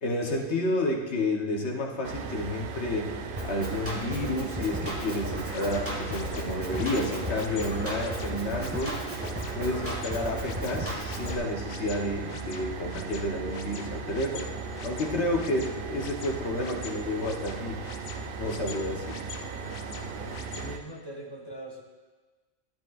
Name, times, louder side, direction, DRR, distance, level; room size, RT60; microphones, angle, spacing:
voice 1, 0.0-3.2 3.4-9.0 9.5-14.5 14.8-17.9 18.4-19.2, left 1 dB, 55° left, 1 dB, 1.2 m, -30 dB
sound 1, 2.0-20.8, right 6 dB, 60° right, 0.5 m, -37 dB
Drum kit, 3.4-11.4, equal, 10° right, 1.3 m, -35 dB
sound 2, 5.4-20.7, left 6 dB, 80° left, 1.1 m, -44 dB
voice 2, 20.1-21.8, right 1 dB, 25° left, 0 dB, 0.7 m, -42 dB
12.0 x 10.0 x 2.4 m, 1.3 s
omnidirectional pair, 1.4 m